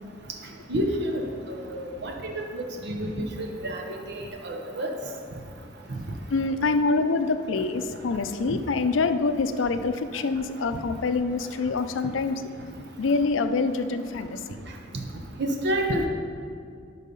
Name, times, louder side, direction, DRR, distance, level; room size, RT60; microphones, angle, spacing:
voice 1, 0.7-1.2 1.5-4.9 8.5-8.6 15.4-16.1, right 1 dB, 60° right, 2 dB, 0.8 m, -29 dB
voice 2, 6.3-12.5 13.0-14.6, left 3 dB, 80° left, 9 dB, 0.5 m, -26 dB
12.0 x 4.1 x 5.3 m, 2.3 s
head